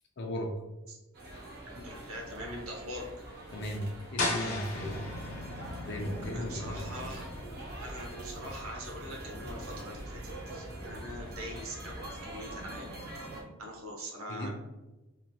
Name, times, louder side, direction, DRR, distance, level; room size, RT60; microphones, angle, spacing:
voice 1, 0.2-0.5 1.3-1.5 3.5-5.1 5.8-7.2 14.3-14.5, left 1 dB, 55° left, 2 dB, 0.5 m, -37 dB
sound 1, 1.1-13.4, right 1 dB, 45° right, 0.6 m, -45 dB
voice 2, 1.7-3.1 6.3-7.3 7.8-12.9 13.6-14.5, equal, 80° right, 0 dB, 0.8 m, -43 dB
sound 2, 4.2-9.8, left 2 dB, 75° left, 0.9 m, -39 dB
sound 3, 4.7-12.5, left 1 dB, 25° left, 1.4 m, -45 dB
3.0 x 2.8 x 2.2 m, 1.1 s
head